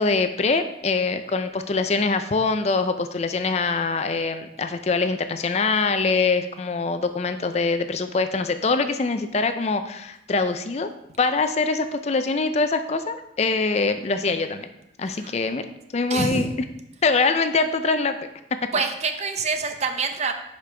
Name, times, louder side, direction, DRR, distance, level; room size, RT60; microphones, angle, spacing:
voice 1, 0.0-10.9 11.2-14.7 15.0-15.7 15.9-16.5 17.0-18.2, left 4 dB, 35° left, 9 dB, 0.4 m, -23 dB
voice 2, 16.1-16.5 18.7-20.3, right 4 dB, 35° right, 6 dB, 0.6 m, -26 dB
9.8 x 5.2 x 3.4 m, 0.82 s
head